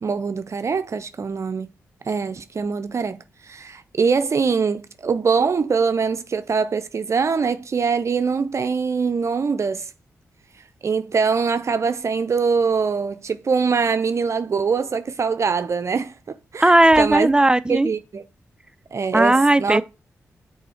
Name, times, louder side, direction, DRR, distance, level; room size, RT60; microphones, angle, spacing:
voice 1, 0.0-1.7 2.1-9.9 10.8-17.3 17.7-18.2 18.9-19.8, right 5 dB, 55° right, 0.6 m, -23 dB
voice 2, 16.6-17.9 19.1-19.8, right 1 dB, 15° right, 0.5 m, -16 dB
6.7 x 4.0 x 4.3 m
supercardioid pair, 45°, 6 cm